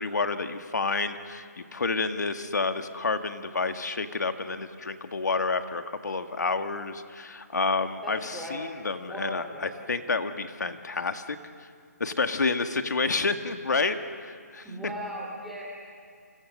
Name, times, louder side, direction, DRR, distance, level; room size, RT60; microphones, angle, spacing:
voice 1, 0.0-1.5 1.7-11.4 12.0-14.7, left 4 dB, 85° left, 7 dB, 1.9 m, -29 dB
voice 2, 8.0-8.6 9.0-9.9 14.6-15.6, equal, ahead, -5 dB, 3.0 m, -38 dB
29.0 x 26.0 x 6.6 m, 2.2 s
hypercardioid pair, 180°, 9 cm